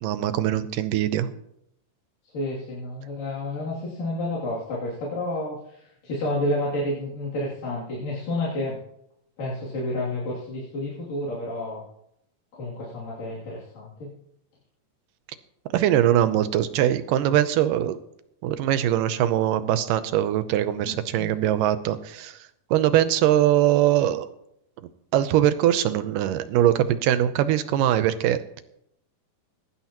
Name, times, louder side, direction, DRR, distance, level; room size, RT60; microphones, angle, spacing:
voice 1, 0.0-1.3 15.7-18.0 18.4-22.4 22.7-24.3 25.1-28.4, right 12 dB, 90° right, 12 dB, 2.4 m, -22 dB
voice 2, 2.2-8.8 9.4-11.8 12.5-14.1 20.9-21.3, left 1 dB, 80° left, -7 dB, 4.5 m, -30 dB
21.5 x 11.5 x 3.0 m, 0.79 s
omnidirectional pair, 3.8 m